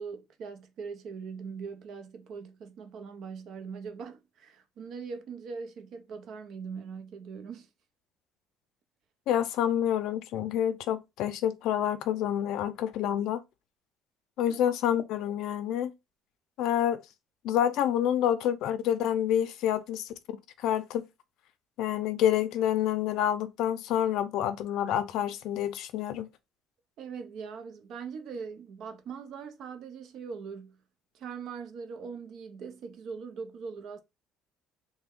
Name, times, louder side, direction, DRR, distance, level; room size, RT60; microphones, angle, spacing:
voice 1, 0.0-7.7 14.5-14.6 27.0-30.8 31.1-34.0, right 5 dB, 60° right, 0.6 m, -41 dB
voice 2, 9.3-13.4 14.4-15.9 16.6-17.0 17.4-20.1 20.6-21.0 21.8-26.3, left 10 dB, 75° left, 0.4 m, -28 dB
3.3 x 2.1 x 3.5 m
cardioid pair, 125°, 0 cm